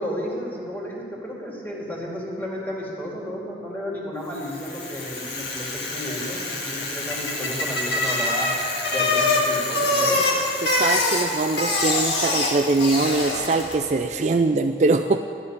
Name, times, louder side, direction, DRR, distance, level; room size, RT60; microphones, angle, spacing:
voice 1, 0.0-8.5 8.9-10.2, equal, 10° left, -4 dB, 2.4 m, -32 dB
Bicycle, 4.4-13.9, left 2 dB, 80° left, 1.9 m, -25 dB
voice 2, 10.6-15.2, right 3 dB, 40° right, 6 dB, 0.4 m, -22 dB
12.5 x 7.1 x 9.8 m, 2.4 s
head